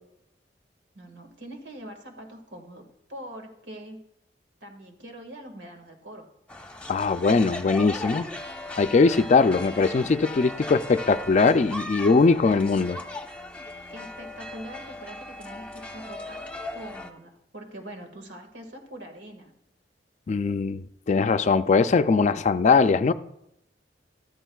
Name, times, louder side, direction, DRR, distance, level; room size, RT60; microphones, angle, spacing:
voice 1, 0.9-4.0 4.6-6.3 13.9-16.4 16.7-19.5, right 1 dB, 90° right, 1.8 m, -43 dB
sound 1, 6.5-17.1, left 1 dB, 5° left, 0.9 m, -37 dB
voice 2, 6.9-8.2 8.8-13.0 20.3-23.1, left 4 dB, 40° left, 0.4 m, -21 dB
13.5 x 13.5 x 2.3 m
head